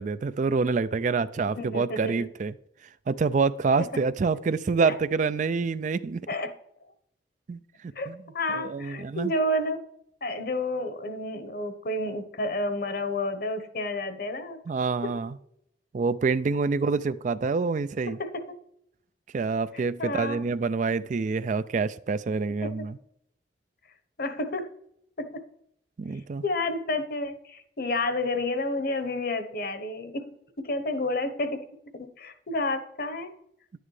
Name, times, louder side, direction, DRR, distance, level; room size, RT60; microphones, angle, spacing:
voice 1, 0.0-2.5 3.1-6.3 7.5-7.6 8.1-8.2 8.5-9.3 14.7-15.4 15.9-18.2 19.3-23.0 26.0-26.4, right 4 dB, 45° right, 0.3 m, -27 dB
voice 2, 1.6-2.1 4.8-4.9 6.3-6.5 8.0-8.1 8.3-9.8 10.2-14.6 15.0-15.1 18.2-18.4 19.7-20.4 22.8-22.9 24.2-24.7 25.2-25.4 26.4-30.3 30.6-31.6 31.9-33.3, left 2 dB, 55° left, 1.0 m, -30 dB
11.0 x 9.4 x 3.3 m
head